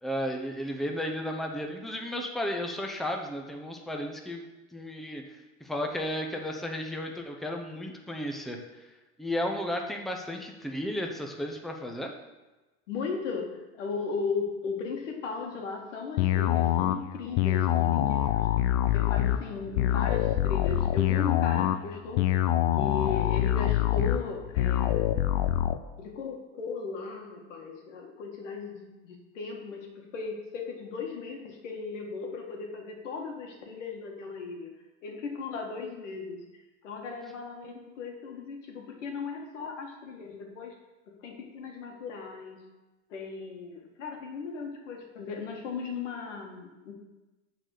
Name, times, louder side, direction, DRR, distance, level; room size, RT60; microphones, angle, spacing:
voice 1, 0.0-4.4 4.7-8.6 9.2-12.1, left 1 dB, ahead, 2 dB, 0.8 m, -33 dB
voice 2, 12.9-18.5 18.9-22.4 22.8-25.3 26.0-34.7 35.0-36.4 36.8-40.8 41.2-42.6 43.1-46.9, left 5 dB, 90° left, 2 dB, 1.8 m, -37 dB
sound 1, 16.2-25.8, left 12 dB, 60° left, 0.6 m, -25 dB
8.9 x 4.2 x 6.5 m, 1.1 s
supercardioid pair, 125°, 36 cm